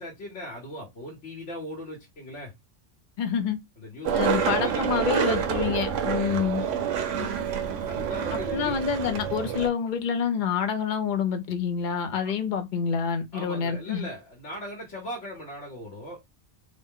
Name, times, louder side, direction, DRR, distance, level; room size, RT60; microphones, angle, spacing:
voice 1, 0.0-2.5 3.8-5.6 7.9-8.9 12.2-12.3 13.3-16.2, equal, 75° left, 1.4 m, -39 dB
voice 2, 3.2-3.6 4.1-6.6 8.5-14.1, left 7 dB, 50° left, 0.7 m, -27 dB
Skateboard, 4.0-9.7, right 8 dB, 85° right, 1.0 m, -27 dB
3.7 x 2.1 x 3.6 m
omnidirectional pair, 1.2 m